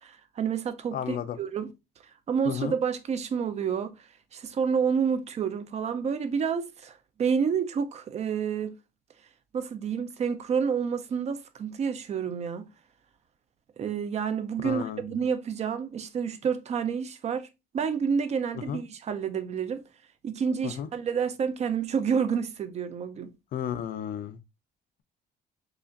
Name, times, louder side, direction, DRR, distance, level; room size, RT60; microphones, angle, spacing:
voice 1, 0.0-1.7 2.3-4.0 4.3-8.8 9.5-12.7 13.8-17.5 17.7-19.8 20.2-23.3, right 6 dB, 40° right, 0.6 m, -29 dB
voice 2, 0.9-1.4 2.4-2.7 14.6-15.0 18.7-18.8 20.6-20.9 23.5-24.4, left 9 dB, 60° left, 0.5 m, -33 dB
4.8 x 2.4 x 2.5 m
cardioid pair, 110°, 17 cm